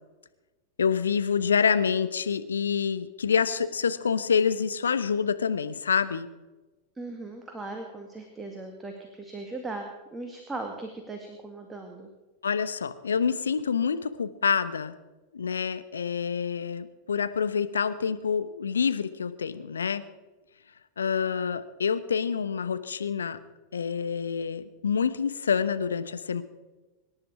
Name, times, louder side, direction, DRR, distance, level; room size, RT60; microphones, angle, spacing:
voice 1, 0.8-6.3 12.4-14.9 15.3-20.0 21.0-23.4 23.7-26.4, left 6 dB, 70° left, 12 dB, 0.9 m, -27 dB
voice 2, 7.0-12.1, right 2 dB, 10° right, 3 dB, 2.1 m, -38 dB
24.5 x 11.0 x 4.8 m, 1.2 s
figure-of-eight pair, 90°, 0 cm